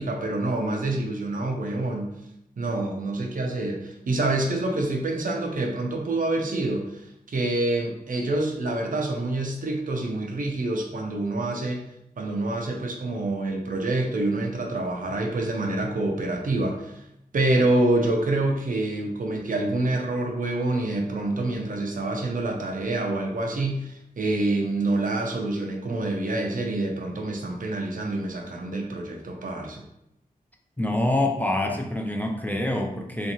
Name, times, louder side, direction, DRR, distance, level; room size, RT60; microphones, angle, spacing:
voice 1, 0.0-2.2 2.6-11.8 12.2-17.0 17.3-29.8, right 2 dB, 60° right, 1 dB, 0.5 m, -27 dB
voice 2, 30.8-33.3, left 1 dB, 10° left, 1 dB, 0.3 m, -26 dB
2.5 x 2.5 x 2.8 m, 0.80 s
wide cardioid pair, 75°, 16 cm